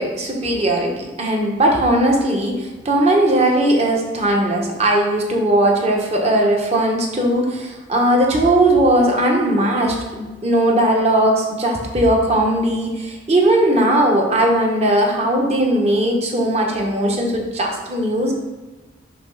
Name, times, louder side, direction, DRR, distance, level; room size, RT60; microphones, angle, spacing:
voice 1, 0.0-18.3, right 1 dB, 30° right, 0 dB, 1.0 m, -18 dB
5.9 x 3.1 x 5.6 m, 1.2 s
head